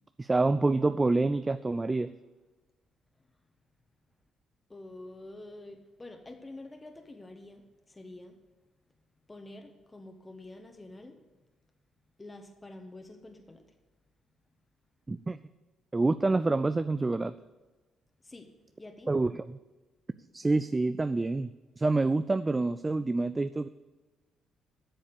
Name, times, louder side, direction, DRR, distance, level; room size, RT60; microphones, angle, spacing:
voice 1, 0.2-2.1 15.1-15.4 15.9-17.3 19.1-19.6 20.3-21.5 21.8-23.7, right 3 dB, 25° right, 12 dB, 0.4 m, -27 dB
voice 2, 4.7-8.4 9.3-11.2 12.2-13.6 18.2-18.5 18.8-19.1, left 2 dB, 20° left, 4 dB, 1.3 m, -47 dB
8.8 x 7.2 x 7.0 m, 1.2 s
hypercardioid pair, 50°, 0 cm